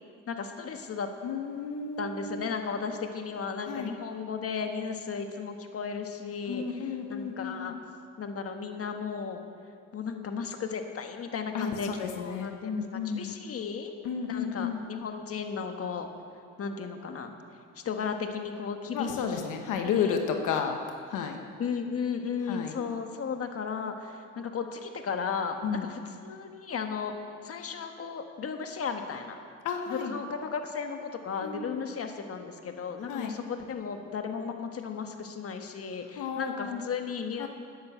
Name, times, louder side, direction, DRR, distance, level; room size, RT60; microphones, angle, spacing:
voice 1, 0.3-1.1 2.0-7.7 8.2-9.4 9.9-13.9 14.3-16.1 16.6-17.3 17.7-19.4 19.9-20.2 21.6-27.1 27.4-29.4 29.9-37.5, left 5 dB, 50° left, 5 dB, 1.4 m, -35 dB
voice 2, 1.2-2.5 3.7-3.9 6.5-7.8 11.5-13.3 14.0-14.8 18.9-20.8 21.1-21.4 22.5-22.7 25.6-25.9 29.6-30.1 31.4-31.9 33.1-33.3 36.2-36.8 37.4-37.5, left 7 dB, 90° left, 4 dB, 1.2 m, -32 dB
13.0 x 9.5 x 8.1 m, 2.3 s
cardioid pair, 90°, 30 cm